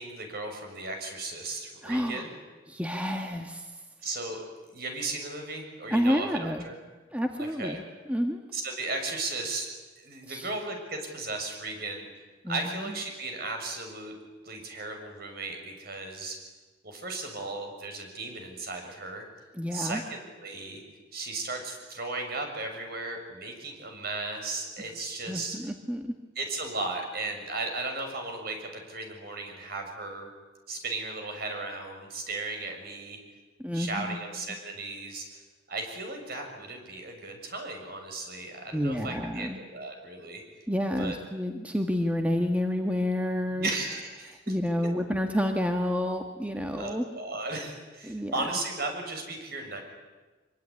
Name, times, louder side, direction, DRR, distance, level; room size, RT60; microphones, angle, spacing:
voice 1, 0.0-2.3 4.0-4.5 4.7-6.3 6.6-6.8 7.4-7.8 8.5-9.7 10.0-12.1 12.5-14.2 14.4-16.4 16.8-19.2 19.7-20.8 21.1-25.6 26.4-30.3 30.7-33.2 33.7-35.4 35.7-40.4 41.0-41.2 43.5-44.5 46.8-49.8, right 2 dB, 55° right, 3 dB, 6.9 m, -36 dB
voice 2, 1.8-2.2 2.7-3.7 5.9-6.6 7.1-7.8 8.1-8.4 10.3-10.5 12.4-12.9 19.6-20.0 25.3-26.1 33.6-34.2 38.7-39.6 40.7-43.7 44.5-47.0 48.0-48.3, equal, 5° right, 4 dB, 1.6 m, -29 dB
25.0 x 23.5 x 9.9 m, 1.2 s
head